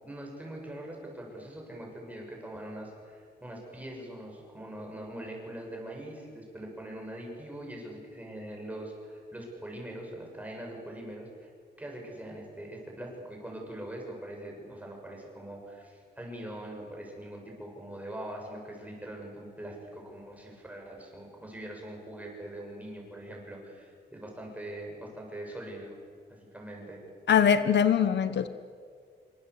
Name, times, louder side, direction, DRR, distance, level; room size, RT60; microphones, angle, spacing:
voice 1, 0.0-11.5 11.8-26.0 26.3-27.0, right 1 dB, 10° right, -1 dB, 7.0 m, -42 dB
voice 2, 27.3-28.5, left 8 dB, 80° left, 11 dB, 1.2 m, -22 dB
27.0 x 25.0 x 8.3 m, 2.1 s
wide cardioid pair, 160°, 18 cm